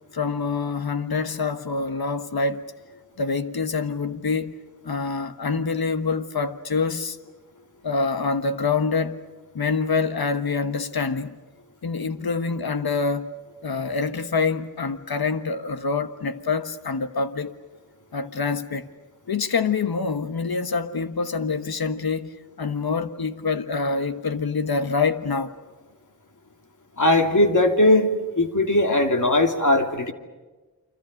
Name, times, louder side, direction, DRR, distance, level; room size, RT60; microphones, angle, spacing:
voice 1, 0.1-2.6 3.2-4.5 4.8-7.2 7.8-9.2 9.5-11.4 11.8-13.3 13.6-17.5 18.1-18.9 19.3-22.3 22.6-25.5, left 4 dB, 90° left, 1.4 m, -26 dB
voice 2, 27.0-28.1 28.4-30.1, left 1 dB, 55° left, 2.9 m, -19 dB
29.5 x 25.0 x 6.6 m
wide cardioid pair, 60°, 36 cm